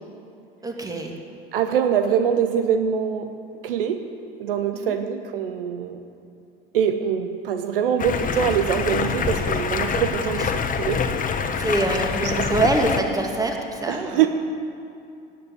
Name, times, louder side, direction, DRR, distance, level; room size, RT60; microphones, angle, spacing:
voice 1, 0.6-1.2 4.7-4.9 11.6-14.3, right 1 dB, 10° right, 2 dB, 2.4 m, -24 dB
voice 2, 1.5-3.3 3.6-4.0 4.4-6.0 6.7-11.1 12.2-12.6 13.9-14.3, right 8 dB, 70° right, 8 dB, 0.9 m, -24 dB
Stream, 8.0-13.0, left 6 dB, 30° left, 1.3 m, -25 dB
18.0 x 8.4 x 8.6 m, 2.6 s
figure-of-eight pair, 65°, 29 cm